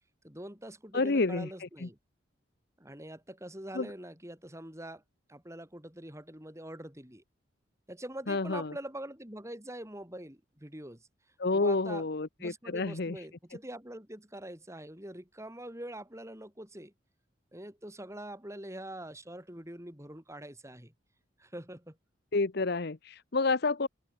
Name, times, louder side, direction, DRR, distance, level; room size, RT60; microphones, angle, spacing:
voice 1, 0.2-2.0 2.8-5.0 5.3-7.2 7.9-11.1 11.5-12.1 12.4-16.9 17.5-20.9 21.4-22.0, right 1 dB, 15° right, 6.6 m, -44 dB
voice 2, 0.9-1.9 3.7-3.9 8.3-8.7 11.4-13.2 22.3-23.9, left 3 dB, 55° left, 0.9 m, -29 dB
open air
head